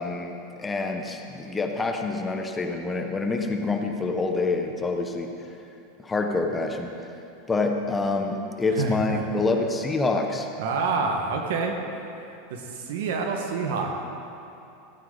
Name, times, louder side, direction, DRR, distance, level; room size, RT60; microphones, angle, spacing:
voice 1, 0.0-5.3 6.0-6.9 7.5-10.5, left 3 dB, 15° left, 4 dB, 1.0 m, -27 dB
voice 2, 8.7-9.2 10.6-11.7 12.5-13.9, right 4 dB, 75° right, 2 dB, 1.5 m, -27 dB
15.0 x 9.0 x 4.0 m, 2.8 s
supercardioid pair, 125°, 0 cm